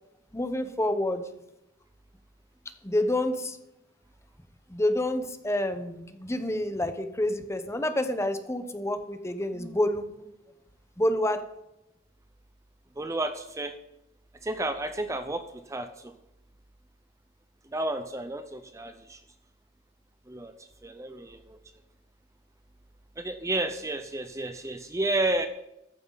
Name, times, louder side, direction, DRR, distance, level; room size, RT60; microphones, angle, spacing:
voice 1, 0.3-1.2 2.8-3.6 4.7-10.3 11.0-11.4, left 1 dB, 15° left, 9 dB, 1.0 m, -28 dB
voice 2, 13.0-13.7 14.4-16.1 17.7-19.2 20.3-20.5 20.8-21.6 23.2-25.5, right 2 dB, 15° right, 8 dB, 0.6 m, -31 dB
14.5 x 13.5 x 4.0 m, 0.88 s
head